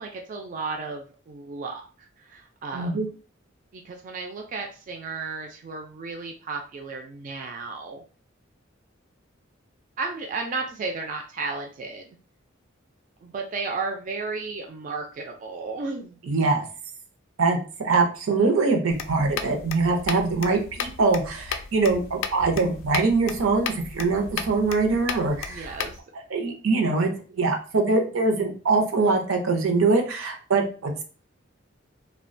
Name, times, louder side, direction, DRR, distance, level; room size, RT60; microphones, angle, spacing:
voice 1, 0.0-2.9 3.7-8.0 10.0-12.2 13.2-16.2 25.5-26.0, right 4 dB, 40° right, 2 dB, 0.3 m, -34 dB
voice 2, 2.7-3.1 16.3-16.6 17.4-25.7 26.3-31.0, right 3 dB, 85° right, 3 dB, 0.6 m, -23 dB
sound 1, 18.9-26.0, left 6 dB, 80° left, 0.3 m, -35 dB
2.3 x 2.1 x 2.5 m, 0.38 s
head